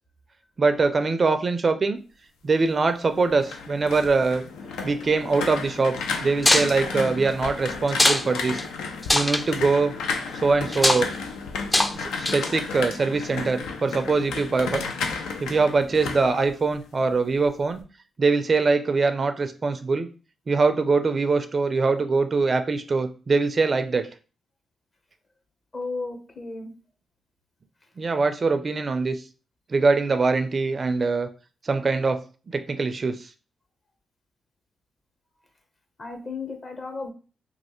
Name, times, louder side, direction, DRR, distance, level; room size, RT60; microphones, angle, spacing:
voice 1, 0.6-2.0 2.4-4.4 4.8-6.0 6.2-8.6 9.1-9.9 10.3-11.1 11.9-14.8 15.4-17.8 18.2-20.1 20.5-24.1 28.0-29.2 29.7-31.3 31.6-32.2 32.5-33.3, right 4 dB, 45° right, 9 dB, 0.4 m, -23 dB
sound 1, 3.1-17.1 17.4-17.8, left 4 dB, 85° left, 0.4 m, -33 dB
sound 2, 6.4-6.7 7.9-8.3 8.6-8.7 9.0-9.4 10.7-11.0 11.7-11.9 12.3-12.6, left 1 dB, 20° left, 0.4 m, -20 dB
voice 2, 25.7-26.7 36.0-37.1, left 3 dB, 40° left, 4 dB, 0.9 m, -34 dB
3.1 x 2.3 x 3.0 m, 0.35 s
supercardioid pair, 50°, 0 cm